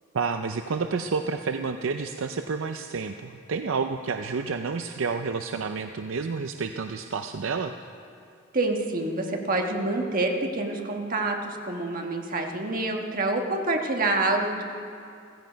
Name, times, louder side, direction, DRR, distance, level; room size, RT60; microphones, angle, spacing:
voice 1, 0.1-7.7, right 5 dB, 70° right, 7 dB, 0.5 m, -30 dB
voice 2, 8.5-14.6, right 2 dB, 45° right, 2 dB, 1.5 m, -27 dB
15.5 x 15.0 x 5.2 m, 2.5 s
head